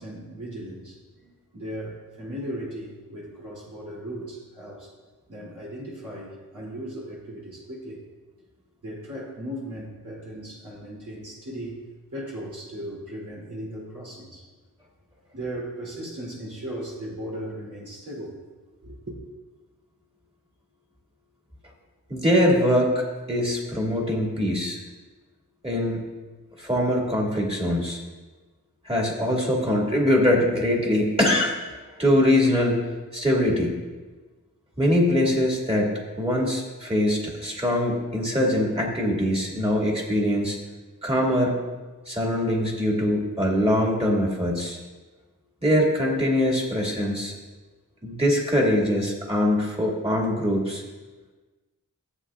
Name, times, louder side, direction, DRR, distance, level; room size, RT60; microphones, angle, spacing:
voice 1, 0.0-4.9 5.3-8.0 8.8-11.8 12.1-14.5 15.3-18.3 18.8-19.2, right 1 dB, 65° right, -6 dB, 3.0 m, -37 dB
voice 2, 22.1-24.8 25.6-26.0 26.6-28.0 28.9-31.6 31.9-32.8 33.1-33.7 34.8-40.6 41.0-41.6 42.1-44.8 45.6-47.3 48.0-50.8, left 1 dB, 15° right, -2 dB, 2.2 m, -23 dB
14.0 x 7.5 x 2.4 m, 1.3 s
wide cardioid pair, 60°, 33 cm